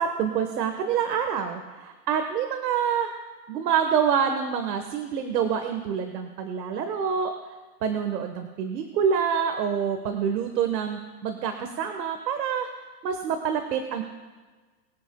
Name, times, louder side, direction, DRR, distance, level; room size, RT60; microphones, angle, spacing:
voice 1, 0.0-3.1 3.5-7.3 7.8-12.7 13.0-14.0, right 7 dB, 80° right, 6 dB, 1.5 m, -26 dB
23.5 x 8.3 x 2.3 m, 1.3 s
hypercardioid pair, 155°, 48 cm